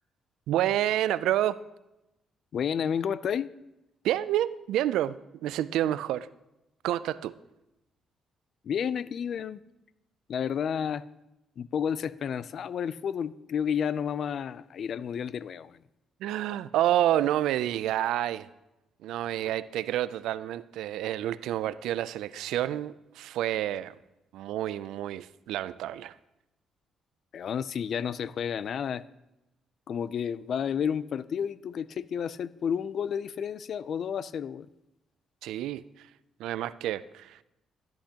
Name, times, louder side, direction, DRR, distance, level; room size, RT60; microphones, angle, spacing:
voice 1, 0.5-1.6 4.0-5.2 5.4-6.3 6.8-7.4 16.2-18.5 19.0-24.0 24.3-26.1 35.4-36.1 36.4-37.4, right 12 dB, 85° right, 16 dB, 0.3 m, -29 dB
voice 2, 2.5-3.5 8.6-9.6 10.3-11.0 11.6-15.8 27.3-29.0 29.9-34.7, left 8 dB, 60° left, 18 dB, 0.3 m, -31 dB
13.0 x 10.5 x 2.9 m, 0.93 s
cardioid pair, 90°, 0 cm